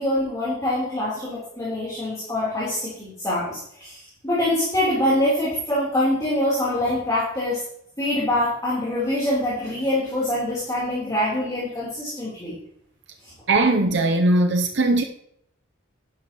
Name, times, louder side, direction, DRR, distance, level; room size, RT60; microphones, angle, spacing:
voice 1, 0.0-7.6 8.0-12.5 13.2-13.3, left 1 dB, 15° left, 3.8 m, -24 dB
voice 2, 13.5-15.0, right 2 dB, 55° right, 0.8 m, -19 dB
11.5 x 11.5 x 3.1 m
head